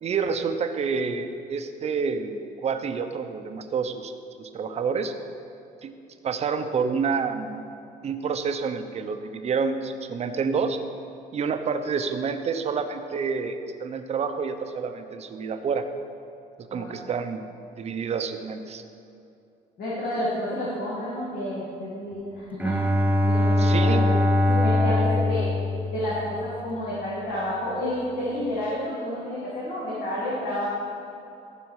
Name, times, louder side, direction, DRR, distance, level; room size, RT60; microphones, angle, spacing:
voice 1, 0.0-4.1 4.4-5.1 5.8-5.9 6.2-7.6 8.0-10.8 11.3-15.8 16.7-17.4 17.8-18.8 23.6-24.0, right 5 dB, 40° right, 7 dB, 0.7 m, -28 dB
voice 2, 19.8-22.8 23.3-24.2 24.5-25.5 25.9-30.7, left 1 dB, 70° left, -8 dB, 2.4 m, -30 dB
Bowed string instrument, 22.6-26.5, left 1 dB, 10° right, 0.8 m, -22 dB
14.5 x 5.2 x 4.8 m, 2.7 s
cardioid pair, 110°, 17 cm